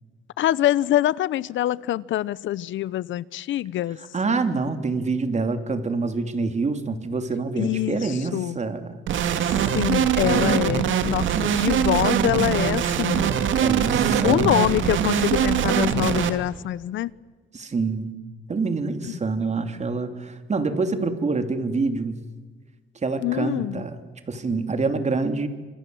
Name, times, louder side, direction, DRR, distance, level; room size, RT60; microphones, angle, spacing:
voice 1, 0.4-4.0 7.6-8.6 9.7-13.3 14.2-17.1 23.2-23.8, left 13 dB, 75° left, 20 dB, 0.8 m, -24 dB
voice 2, 4.0-9.0 13.6-14.6 17.5-18.1 18.5-22.2 23.0-24.0 24.3-25.5, right 4 dB, 35° right, 7 dB, 3.0 m, -26 dB
sound 1, 9.1-16.3, right 8 dB, 75° right, 2.4 m, -22 dB
26.5 x 26.5 x 7.9 m, 1.4 s
cardioid pair, 90°, 20 cm